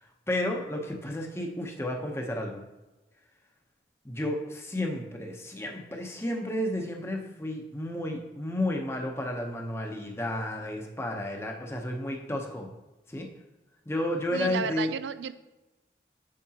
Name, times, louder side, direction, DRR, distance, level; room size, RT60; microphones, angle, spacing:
voice 1, 0.3-2.6 4.0-12.7 13.1-13.3 13.9-14.9, left 1 dB, 15° left, 1 dB, 0.8 m, -32 dB
voice 2, 14.3-15.3, right 7 dB, 85° right, 14 dB, 0.4 m, -33 dB
8.5 x 6.6 x 2.9 m, 1.1 s
head